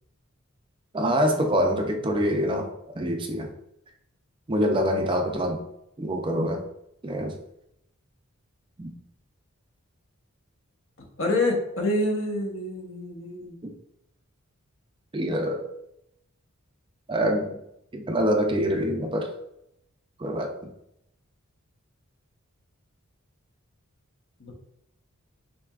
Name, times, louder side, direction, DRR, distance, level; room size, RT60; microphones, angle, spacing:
voice 1, 0.9-2.7 3.0-3.5 4.5-5.6 6.0-6.6 7.0-7.3 8.8-8.9 13.6-13.7 15.1-15.7 17.1-17.5 17.9-19.3 20.2-20.7, equal, 20° right, 3 dB, 0.4 m, -25 dB
voice 2, 4.7-5.1 11.2-13.6 24.4-24.5, left 2 dB, 65° left, 1 dB, 0.9 m, -27 dB
6.5 x 2.8 x 2.4 m, 0.79 s
head